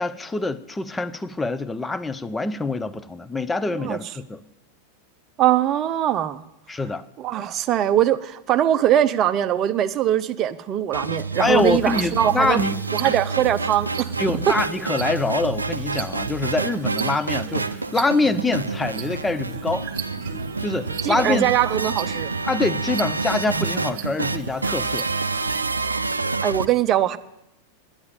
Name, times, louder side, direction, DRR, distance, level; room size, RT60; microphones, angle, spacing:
voice 1, 0.0-4.4 6.7-7.0 11.4-12.7 14.2-19.9 20.6-21.5 22.5-25.1, left 3 dB, 10° left, 0.6 m, -25 dB
voice 2, 3.7-4.0 5.4-6.4 7.2-12.6 12.9-14.1 21.0-22.3 25.9-26.0 26.4-27.2, right 11 dB, 35° right, 0.6 m, -21 dB
sound 1, 10.9-26.6, right 3 dB, 80° right, 0.5 m, -28 dB
sound 2, 11.3-25.6, right 9 dB, 50° right, 1.1 m, -38 dB
11.0 x 8.9 x 8.5 m
figure-of-eight pair, 90°, 0 cm